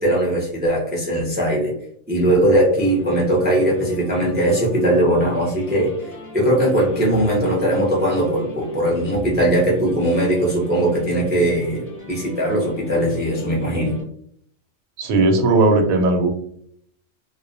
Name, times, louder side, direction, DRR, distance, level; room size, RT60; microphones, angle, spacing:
voice 1, 0.0-1.7 2.1-14.0, right 1 dB, 15° right, -3 dB, 0.3 m, -19 dB
sound 1, 2.8-14.0, equal, 15° left, 0.7 m, -38 dB
voice 2, 15.0-16.3, right 2 dB, 85° right, 4 dB, 1.0 m, -17 dB
2.4 x 2.1 x 2.5 m, 0.66 s
omnidirectional pair, 1.4 m